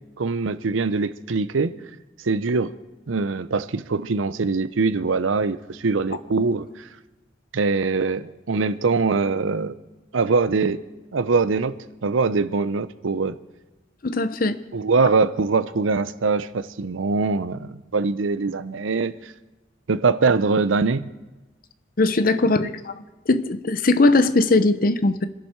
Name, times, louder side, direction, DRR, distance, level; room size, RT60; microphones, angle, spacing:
voice 1, 0.2-1.7 2.2-2.7 3.1-6.9 7.5-9.7 10.1-10.8 11.1-13.4 14.7-19.3 19.9-21.1 22.4-22.5, right 4 dB, 90° right, 14 dB, 0.6 m, -23 dB
voice 2, 14.0-14.6 22.0-22.9 23.3-25.3, left 2 dB, 50° left, 12 dB, 0.7 m, -19 dB
27.0 x 11.0 x 4.5 m, 1.1 s
head